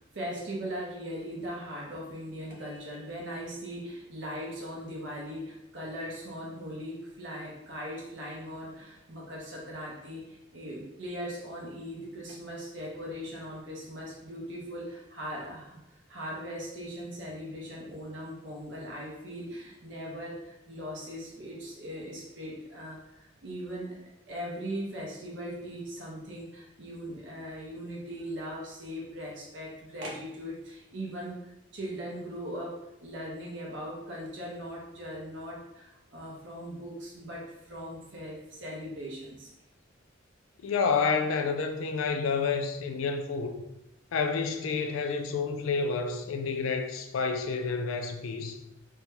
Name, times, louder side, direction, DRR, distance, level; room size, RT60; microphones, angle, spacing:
voice 1, 0.0-24.0 24.3-39.5, equal, 60° right, 0.7 m, -39 dB
voice 2, 40.6-43.5 44.1-48.6, left 5 dB, 85° left, 0.4 m, -29 dB
2.7 x 2.2 x 3.1 m
head